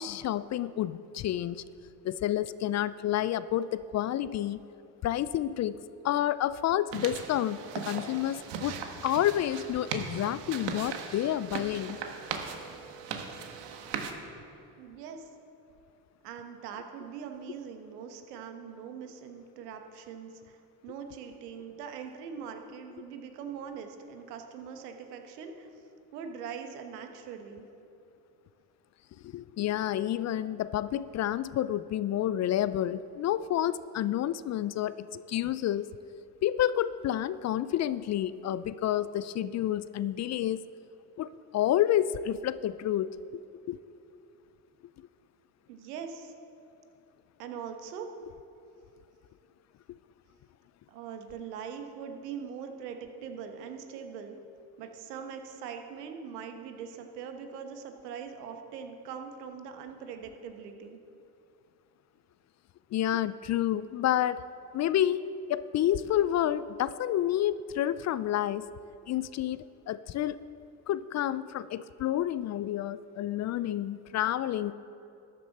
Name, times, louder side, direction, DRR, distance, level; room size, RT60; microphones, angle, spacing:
voice 1, 0.0-1.6 2.0-4.6 5.0-5.8 6.0-12.0 29.2-35.9 36.4-40.6 41.2-43.2 43.7-43.8 49.9-50.0 62.9-64.4 64.7-68.7 69.1-70.4 70.9-74.7, left 12 dB, 40° left, 17 dB, 0.4 m, -29 dB
sound 1, 6.9-14.1, right 6 dB, 65° right, 1.6 m, -38 dB
voice 2, 14.8-15.3 16.2-25.7 26.1-27.6 45.7-46.3 47.4-48.1 50.9-54.4 54.8-61.0, right 7 dB, 85° right, 5 dB, 1.3 m, -42 dB
13.5 x 10.5 x 4.2 m, 2.7 s
hypercardioid pair, 70°, 46 cm